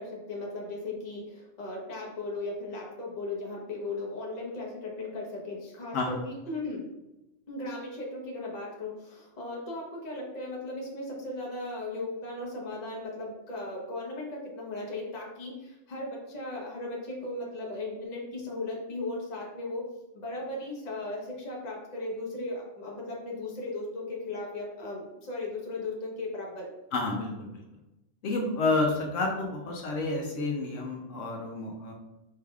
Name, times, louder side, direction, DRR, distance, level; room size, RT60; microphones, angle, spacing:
voice 1, 0.0-6.8 7.5-19.8 20.1-26.7, left 2 dB, 35° left, -2 dB, 1.0 m, -37 dB
voice 2, 26.9-27.6 28.2-31.9, left 3 dB, 80° left, 1 dB, 1.0 m, -30 dB
4.5 x 3.3 x 2.3 m, 0.93 s
omnidirectional pair, 1.3 m